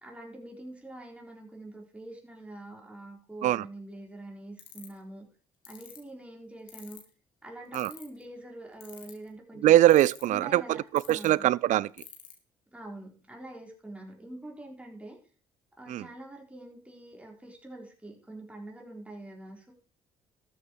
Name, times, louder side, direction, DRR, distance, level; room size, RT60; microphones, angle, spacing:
voice 1, 0.0-5.3 5.7-7.0 7.4-9.7 10.2-10.8 11.1-11.5 12.7-15.2 15.8-19.7, right 1 dB, 10° right, 4.1 m, -45 dB
sound 1, 4.6-5.0 5.6-6.0 6.7-7.1 7.7-8.2 8.8-9.3 9.9-10.4 11.0-11.3 12.0-12.3, left 14 dB, 75° left, 2.7 m, -46 dB
voice 2, 9.6-11.9 15.9-16.1, right 14 dB, 60° right, 0.4 m, -22 dB
12.5 x 8.0 x 4.7 m
hypercardioid pair, 60°, 14 cm